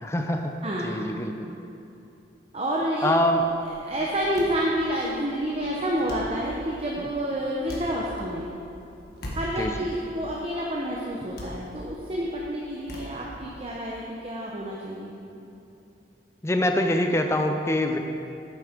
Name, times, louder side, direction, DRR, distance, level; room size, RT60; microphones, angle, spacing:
voice 1, 0.0-0.6 0.8-1.5 3.0-3.4 7.0-7.1 9.6-9.9 16.4-18.0, left 1 dB, 15° left, 5 dB, 0.5 m, -24 dB
voice 2, 0.6-1.1 2.5-3.4 3.9-8.5 9.3-15.1, equal, 30° right, -3 dB, 0.8 m, -29 dB
sound 1, 3.2-13.7, equal, 60° left, 1.6 m, -42 dB
8.5 x 8.0 x 5.0 m, 2.8 s
head